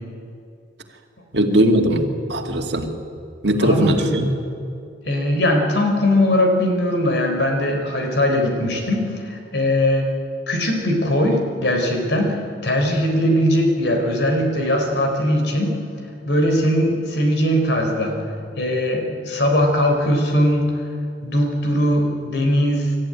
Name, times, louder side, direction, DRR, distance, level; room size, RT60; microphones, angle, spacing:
voice 1, 1.3-2.9 3.4-4.3, right 1 dB, 65° right, 3 dB, 2.2 m, -19 dB
voice 2, 3.6-4.1 5.1-10.1 10.5-15.8 16.3-18.2 18.6-20.7 21.2-23.0, left 1 dB, 65° left, 3 dB, 4.0 m, -20 dB
25.5 x 14.0 x 10.0 m, 2.5 s
head